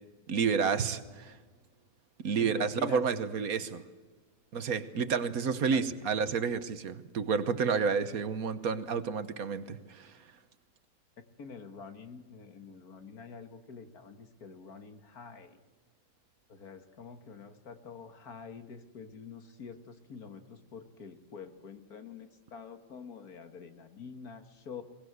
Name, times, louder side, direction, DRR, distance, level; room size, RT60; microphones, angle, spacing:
voice 1, 0.3-1.4 2.2-3.8 4.5-10.2, right 6 dB, 65° right, 13 dB, 1.5 m, -30 dB
voice 2, 2.4-3.0 5.7-5.9 11.4-15.6 16.5-24.8, left 5 dB, 65° left, 8 dB, 2.1 m, -46 dB
21.5 x 20.0 x 8.0 m, 1.3 s
omnidirectional pair, 1.7 m